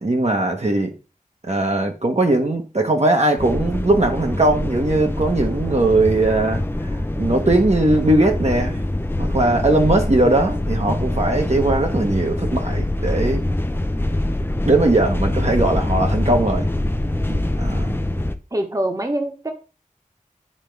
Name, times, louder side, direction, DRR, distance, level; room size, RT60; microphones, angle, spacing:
voice 1, 0.0-0.9 1.4-6.9 7.2-8.9 9.2-13.5 14.6-16.7 17.6-18.0, right 2 dB, 50° right, 1.2 m, -19 dB
sound 1, 3.4-18.4, left 1 dB, 15° left, 0.6 m, -24 dB
voice 2, 17.3-17.7 18.5-19.5, right 1 dB, 25° right, 1.2 m, -25 dB
9.8 x 3.7 x 3.4 m
wide cardioid pair, 50°, 14 cm